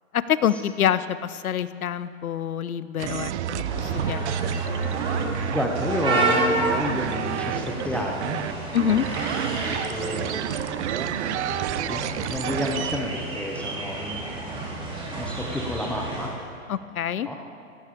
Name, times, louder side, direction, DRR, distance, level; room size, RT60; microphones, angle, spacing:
voice 1, 0.1-4.6 8.7-9.1 16.7-17.3, left 9 dB, 85° left, 15 dB, 0.8 m, -26 dB
sound 1, 3.0-13.0, right 11 dB, 55° right, 0.6 m, -30 dB
sound 2, 3.6-16.3, right 2 dB, 10° right, 3.0 m, -30 dB
voice 2, 5.5-8.4 9.5-10.6 11.0-11.1 11.9-12.0 12.3-16.3 17.2-17.4, left 1 dB, 5° left, 0 dB, 0.7 m, -31 dB
18.0 x 15.5 x 3.7 m, 2.3 s
hypercardioid pair, 140°, 42 cm